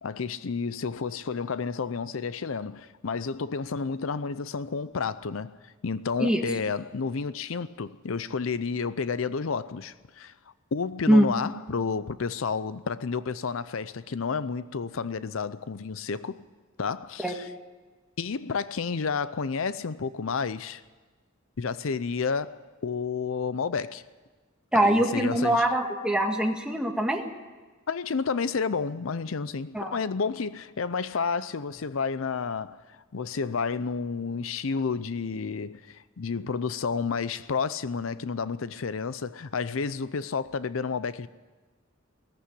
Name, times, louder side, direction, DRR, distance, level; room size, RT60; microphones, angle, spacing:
voice 1, 0.0-10.3 10.7-16.4 16.8-17.5 18.2-20.8 21.6-24.0 24.7-25.7 27.9-41.3, left 5 dB, 75° left, 0.6 m, -31 dB
voice 2, 24.7-27.3 29.7-29.9, right 1 dB, 5° right, 1.9 m, -23 dB
18.5 x 14.5 x 9.9 m
head